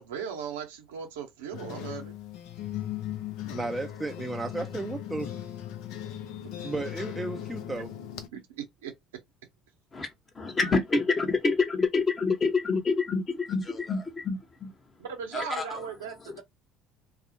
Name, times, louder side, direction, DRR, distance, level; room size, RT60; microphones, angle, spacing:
voice 1, 0.0-2.2 6.7-6.8 8.3-8.9 15.0-16.4, right 7 dB, 90° right, 0.7 m, -38 dB
sound 1, 1.5-8.3, left 11 dB, 70° left, 0.4 m, -38 dB
voice 2, 3.4-5.4 6.6-7.9, right 2 dB, 15° right, 0.4 m, -34 dB
voice 3, 10.3-14.7 15.3-15.6, left 4 dB, 30° left, 0.9 m, -27 dB
2.3 x 2.0 x 2.7 m
hypercardioid pair, 70°, 0 cm